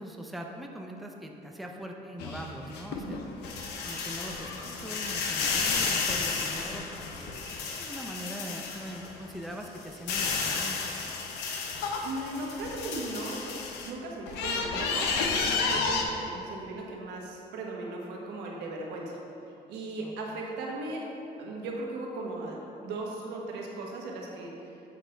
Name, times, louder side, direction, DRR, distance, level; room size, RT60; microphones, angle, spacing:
voice 1, 0.0-3.2 3.5-11.1 20.0-20.5, equal, ahead, 1 dB, 0.5 m, -42 dB
sound 1, 2.2-9.1 9.5-13.9 14.3-16.0, left 4 dB, 85° left, 0.8 m, -32 dB
voice 2, 12.0-13.4 13.8-19.2 19.7-21.0 21.4-24.7, right 2 dB, 85° right, -1 dB, 1.2 m, -37 dB
8.3 x 5.2 x 3.4 m, 2.9 s
cardioid pair, 110°, 17 cm